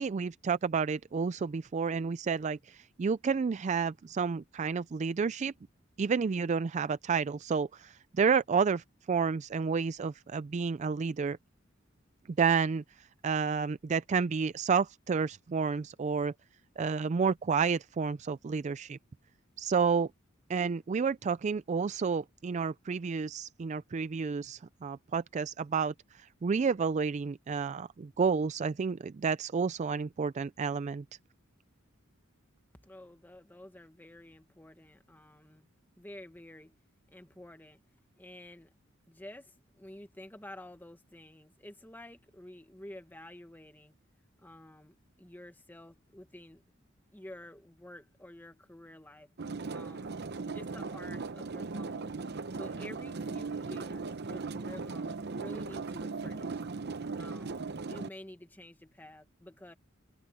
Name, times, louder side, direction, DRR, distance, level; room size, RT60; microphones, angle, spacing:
voice 1, 0.0-5.5 6.0-11.4 12.4-12.8 13.2-16.3 16.8-19.0 19.6-20.1 20.5-31.0, right 5 dB, 35° right, 0.3 m, -30 dB
voice 2, 32.8-35.7 36.0-36.7 37.1-37.8 38.2-38.7 39.1-43.9 44.4-46.6 47.1-49.3 49.7-50.2 50.5-52.2 52.5-56.6 57.1-59.7, left 1 dB, 10° left, 1.3 m, -50 dB
sound 1, 49.4-58.1, right 4 dB, 55° right, 0.7 m, -38 dB
head